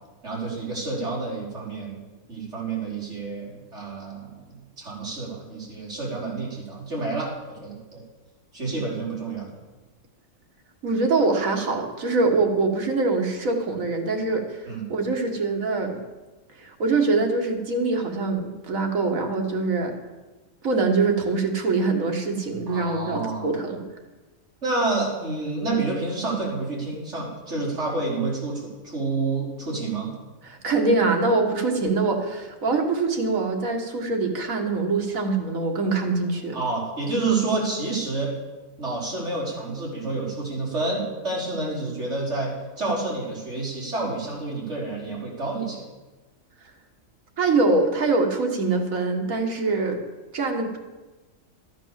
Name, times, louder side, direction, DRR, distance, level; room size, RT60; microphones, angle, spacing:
voice 1, 0.2-1.9 2.3-4.5 4.8-8.0 8.5-9.5 14.6-14.8 22.7-23.5 24.6-30.1 36.5-38.3 38.8-45.8, right 3 dB, 60° right, -5 dB, 4.9 m, -29 dB
voice 2, 10.8-16.0 16.6-20.0 20.6-23.8 30.4-36.6 47.4-50.0 50.3-50.8, right 3 dB, 85° right, 3 dB, 2.0 m, -24 dB
13.5 x 8.9 x 7.3 m, 1.2 s
omnidirectional pair, 1.4 m